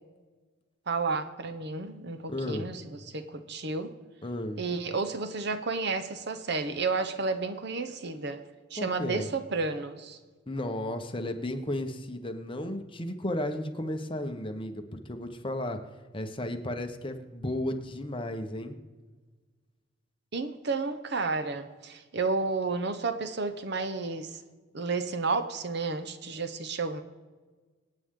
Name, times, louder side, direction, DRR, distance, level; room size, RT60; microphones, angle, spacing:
voice 1, 0.9-3.9 4.6-8.4 8.7-10.2 20.3-24.4 24.7-27.0, right 4 dB, 60° right, 10 dB, 0.9 m, -31 dB
voice 2, 2.3-2.7 4.2-4.6 8.8-9.3 10.5-15.8 16.1-18.8, left 1 dB, 25° left, 6 dB, 1.1 m, -34 dB
25.5 x 9.0 x 3.8 m, 1.4 s
head